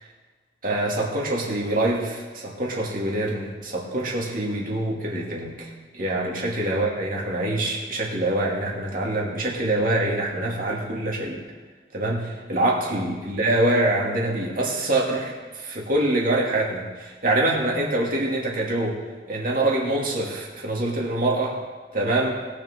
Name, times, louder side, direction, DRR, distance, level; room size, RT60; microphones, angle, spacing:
voice 1, 0.6-11.4 11.9-19.0 19.3-21.6 21.9-22.4, right 1 dB, 50° right, -3 dB, 2.6 m, -25 dB
21.0 x 7.0 x 3.8 m, 1.4 s
head